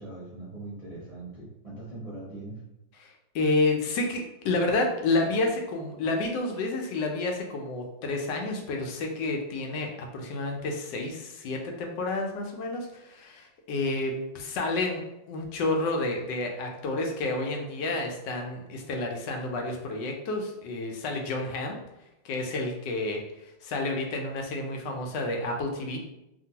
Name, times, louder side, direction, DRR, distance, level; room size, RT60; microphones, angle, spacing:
voice 1, 0.0-2.6, right 2 dB, 30° right, -11 dB, 0.7 m, -41 dB
voice 2, 3.0-15.0 15.3-21.8 22.2-23.2 23.6-26.0, left 2 dB, 75° left, 2 dB, 1.1 m, -30 dB
2.9 x 2.5 x 2.7 m, 0.88 s
omnidirectional pair, 2.1 m